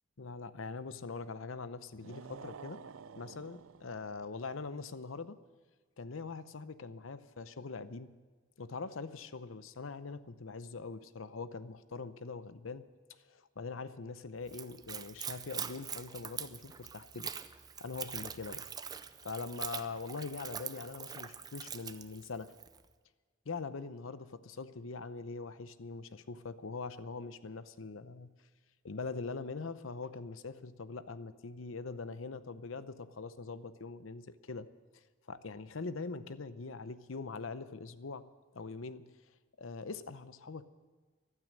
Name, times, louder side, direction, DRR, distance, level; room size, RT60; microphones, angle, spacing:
voice 1, 0.2-2.8 3.2-5.4 6.0-8.2 8.6-12.9 13.3-17.3 17.8-18.6 19.2-22.5 23.5-28.3 28.8-34.7 34.9-38.3 38.5-39.1 39.6-40.7, left 4 dB, 85° left, 14 dB, 0.8 m, -43 dB
sound 1, 1.9-4.3, right 6 dB, 90° right, 0.5 m, -50 dB
Splash splatter / Trickle dribble, 14.4-22.8, right 7 dB, 20° right, 0.5 m, -43 dB
15.0 x 12.5 x 6.5 m, 1.4 s
head